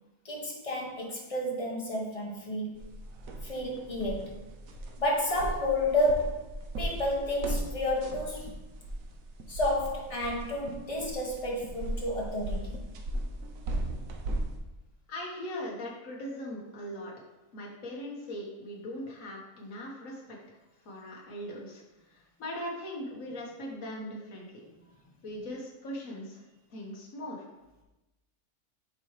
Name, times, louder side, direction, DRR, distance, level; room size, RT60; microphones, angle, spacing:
voice 1, 0.2-2.9 3.4-4.4 5.0-8.5 9.5-12.7, left 1 dB, 25° left, -2 dB, 1.1 m, -31 dB
sound 1, 2.8-14.6, right 1 dB, 65° right, 1.1 m, -37 dB
voice 2, 15.1-17.1 17.5-20.4 20.8-21.8 22.1-24.5 25.2-26.4 26.7-27.4, equal, 55° left, -2 dB, 1.6 m, -40 dB
7.7 x 4.6 x 3.2 m, 1.0 s
omnidirectional pair, 1.7 m